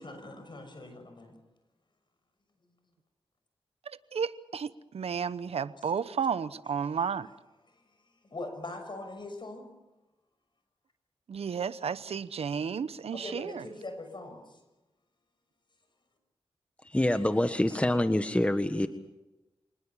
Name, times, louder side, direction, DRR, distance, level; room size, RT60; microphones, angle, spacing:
voice 1, 0.0-1.4 7.0-7.1 7.7-9.7 13.1-14.6, left 2 dB, 50° left, 6.2 m, -42 dB
voice 2, 3.9-7.3 11.3-13.6, right 6 dB, 80° right, 0.9 m, -32 dB
voice 3, 16.8-18.9, left 1 dB, 10° left, 1.5 m, -26 dB
26.5 x 20.0 x 7.4 m
cardioid pair, 50°, 10 cm